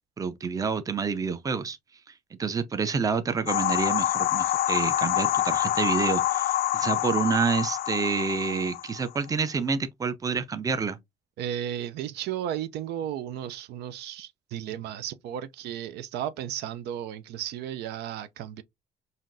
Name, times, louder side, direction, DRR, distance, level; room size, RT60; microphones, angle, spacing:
voice 1, 0.2-1.8 2.3-11.0, right 5 dB, 20° right, 0.5 m, -28 dB
sound 1, 3.5-9.2, left 13 dB, 65° left, 0.4 m, -26 dB
voice 2, 11.4-18.6, right 10 dB, 75° right, 0.5 m, -34 dB
5.6 x 2.5 x 2.6 m
cardioid pair, 110°, 17 cm